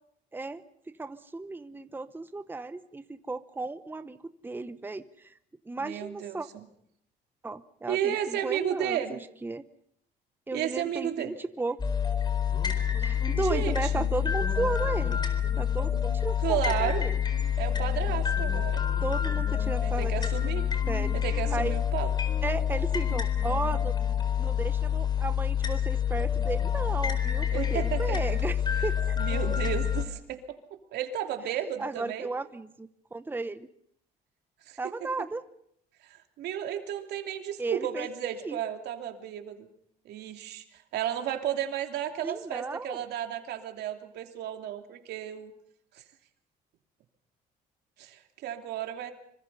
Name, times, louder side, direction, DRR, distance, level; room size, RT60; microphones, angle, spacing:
voice 1, 0.3-4.2 4.4-5.3 5.6-6.5 7.4-9.6 10.5-11.8 13.0-15.2 15.6-17.1 19.0-20.3 20.9-21.2 21.5-21.7 22.4-23.9 24.4-29.2 31.8-33.7 34.8-35.4 37.6-38.1 38.4-38.6 42.2-43.0, right 3 dB, 10° right, 12 dB, 1.0 m, -35 dB
voice 2, 5.8-6.4 7.9-9.2 10.5-11.3 13.4-14.0 16.4-17.0 17.6-18.8 19.8-20.6 21.1-22.1 27.5-28.4 28.8-28.9 29.2-30.4 30.7-32.3 34.7-34.8 36.0-39.7 40.0-45.5 45.9-46.0 48.0-49.1, right 10 dB, 75° right, 6 dB, 2.9 m, -33 dB
sound 1, 11.8-30.1, left 9 dB, 25° left, 4.2 m, -27 dB
25.5 x 25.0 x 5.5 m, 0.72 s
cardioid pair, 110°, 17 cm